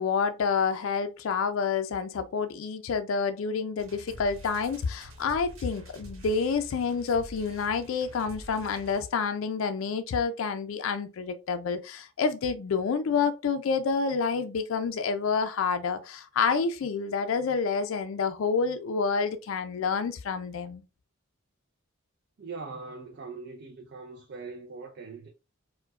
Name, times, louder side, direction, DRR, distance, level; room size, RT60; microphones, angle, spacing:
voice 1, 0.0-20.8, left 5 dB, 70° left, 0.4 m, -28 dB
sound 1, 3.8-9.4, equal, 75° right, 1.1 m, -47 dB
voice 2, 22.4-25.3, right 4 dB, 50° right, 0.4 m, -41 dB
4.5 x 2.2 x 2.3 m
head